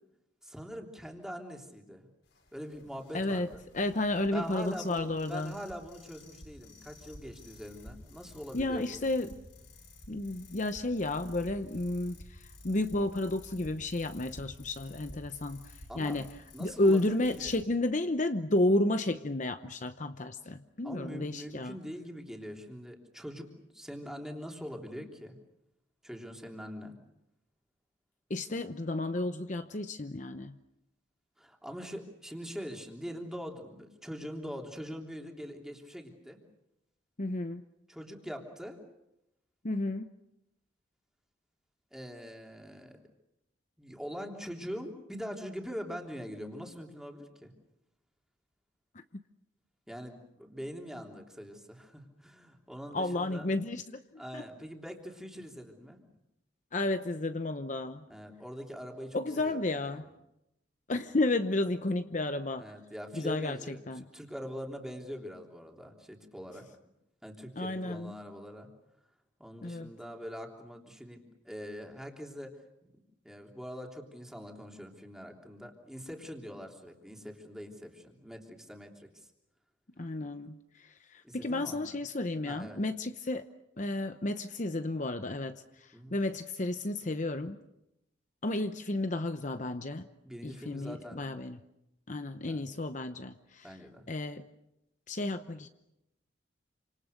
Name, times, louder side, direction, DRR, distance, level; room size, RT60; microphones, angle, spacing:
voice 1, 0.4-2.1 2.5-3.6 4.3-9.0 15.9-16.2 16.5-17.1 17.4-17.6 20.8-25.4 26.0-27.0 31.4-36.4 37.9-38.8 41.9-43.0 43.8-47.5 49.9-53.5 54.2-56.0 58.1-60.0 62.6-66.7 67.2-68.7 69.4-72.5 72.8-79.3 81.2-82.0 82.5-82.8 85.9-86.2 90.3-91.2 92.5-92.7 93.6-94.1, equal, 5° right, 1 dB, 3.3 m, -43 dB
sound 1, 2.2-17.6, left 1 dB, 75° left, 7.1 m, -52 dB
voice 2, 3.1-3.5 3.7-5.6 8.5-9.4 10.1-16.3 16.6-21.8 28.3-30.6 37.2-37.6 39.6-40.1 48.9-49.0 52.9-54.4 56.7-58.0 59.1-60.1 60.9-62.7 63.1-64.1 67.6-68.1 69.6-69.9 80.0-83.5 83.8-87.6 88.4-90.1 90.4-91.6 92.1-93.8 94.1-94.4 95.1-95.7, left 2 dB, 40° left, 9 dB, 0.9 m, -32 dB
28.5 x 26.5 x 6.6 m, 0.87 s
head